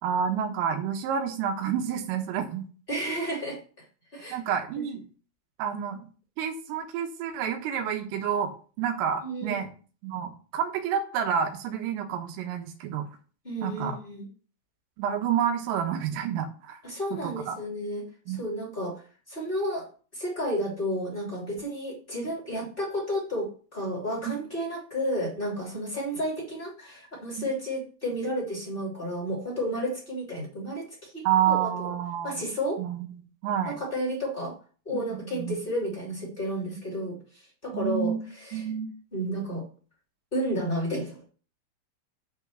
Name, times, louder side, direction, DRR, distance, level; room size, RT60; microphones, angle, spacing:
voice 1, 0.0-2.7 4.3-5.1 5.6-6.0 6.4-8.5 8.8-9.7 10.0-13.1 13.6-14.0 15.0-16.8 17.2-17.6 18.3-18.4 27.4-27.5 31.3-32.4 32.8-33.1 33.4-33.8 34.9-35.6 37.7-38.9, right 8 dB, 85° right, 4 dB, 3.9 m, -29 dB
voice 2, 2.9-3.6 4.1-4.4 4.8-4.9 9.2-9.6 13.4-14.3 16.8-19.9 20.1-31.9 32.2-32.8 33.6-34.6 34.8-37.2 37.6-38.6 39.1-39.6 40.3-41.3, equal, 15° left, -3 dB, 1.8 m, -32 dB
9.8 x 3.6 x 7.1 m, 0.39 s
omnidirectional pair, 5.7 m